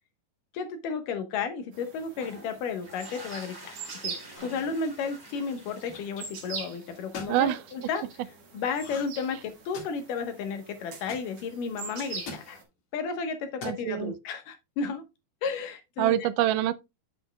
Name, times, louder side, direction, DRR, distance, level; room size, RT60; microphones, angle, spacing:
voice 1, 0.5-8.0 8.5-12.6 12.9-15.0 15.4-16.3, left 5 dB, 75° left, 2.7 m, -33 dB
sound 1, 1.7-12.6, right 5 dB, 55° right, 2.6 m, -44 dB
sound 2, 2.1-6.7, right 1 dB, 15° right, 0.8 m, -48 dB
sound 3, 4.3-4.7 5.5-6.2 7.0-7.4 8.8-9.2 9.5-10.1 11.1-11.2 12.1-12.5 13.5-13.8, left 3 dB, 55° left, 2.7 m, -42 dB
voice 2, 7.3-7.6 13.6-14.1 16.0-16.7, right 13 dB, 80° right, 2.0 m, -25 dB
7.9 x 7.8 x 2.2 m
omnidirectional pair, 4.0 m